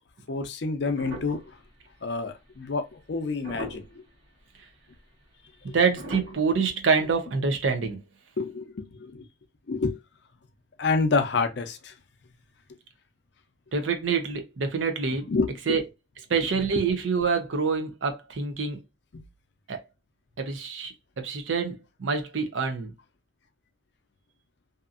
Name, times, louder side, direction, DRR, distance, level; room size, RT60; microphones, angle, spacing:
voice 1, 0.3-1.4 2.0-3.8 5.7-5.8 8.4-9.2 9.7-10.0 10.8-11.9 15.3-15.8, left 4 dB, 65° left, 0.5 m, -28 dB
sound 1, 1.0-2.3 3.0-3.1 3.4-4.1 4.8-4.9 6.0-6.3, right 1 dB, 60° right, 1.2 m, -39 dB
voice 2, 5.7-8.0 13.7-15.3 15.7-15.8 16.3-18.8 19.7-19.8 20.4-22.9, right 5 dB, 80° right, 0.6 m, -26 dB
2.7 x 2.5 x 2.4 m
head